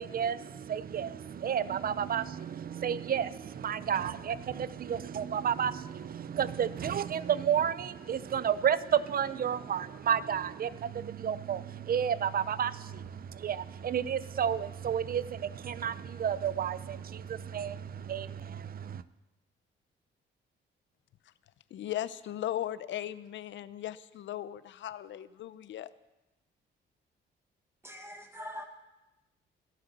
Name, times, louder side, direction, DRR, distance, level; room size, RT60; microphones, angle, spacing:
voice 1, 0.0-19.0, right 8 dB, 45° right, 16 dB, 0.8 m, -31 dB
voice 2, 21.7-25.9, left 12 dB, 70° left, 15 dB, 0.8 m, -37 dB
voice 3, 27.8-28.6, left 1 dB, 10° right, 4 dB, 1.9 m, -43 dB
16.0 x 12.0 x 6.9 m, 1.0 s
cardioid pair, 90°, 20 cm